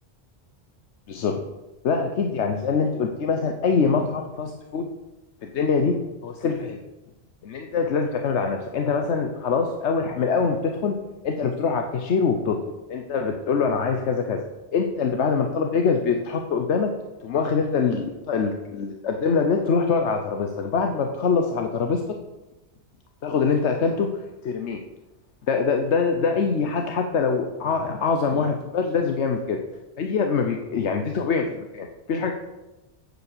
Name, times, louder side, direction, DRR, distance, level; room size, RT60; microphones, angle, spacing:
voice 1, 1.1-1.4 1.8-4.9 5.4-6.0 6.2-6.8 7.4-10.9 11.2-12.6 12.9-14.4 14.7-16.9 17.2-22.0 23.2-24.8 25.5-29.6 30.0-32.3, left 5 dB, 90° left, 4 dB, 1.2 m, -24 dB
9.4 x 7.2 x 6.7 m, 1.0 s
omnidirectional pair, 1.1 m